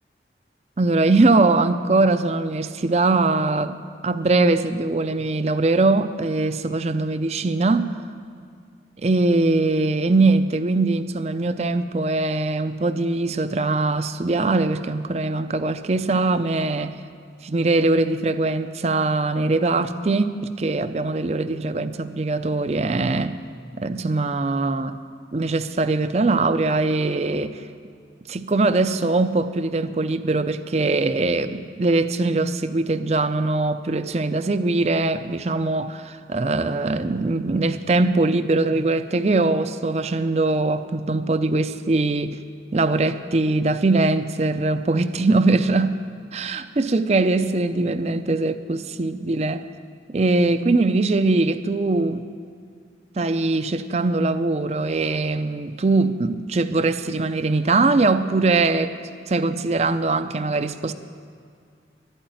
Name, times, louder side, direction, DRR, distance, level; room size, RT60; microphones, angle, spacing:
voice 1, 0.8-7.9 9.0-17.0 17.4-23.3 23.7-25.0 25.3-27.6 28.3-42.4 42.7-46.0 46.3-49.6 50.1-52.3 53.2-59.0 59.3-60.9, right 3 dB, 35° right, 11 dB, 0.5 m, -21 dB
12.0 x 8.8 x 9.2 m, 2.2 s
head